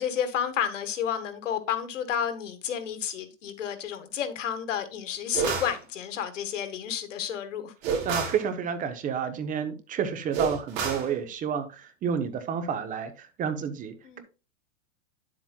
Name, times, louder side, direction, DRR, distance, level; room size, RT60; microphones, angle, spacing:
voice 1, 0.0-7.7 14.0-14.2, left 8 dB, 90° left, 1.6 m, -31 dB
sound 1, 5.3-5.8 7.8-8.4 10.3-11.1, right 5 dB, 40° right, 3.3 m, -29 dB
voice 2, 8.0-14.2, right 7 dB, 20° right, 1.0 m, -30 dB
9.8 x 7.6 x 2.3 m
supercardioid pair, 145°, 36 cm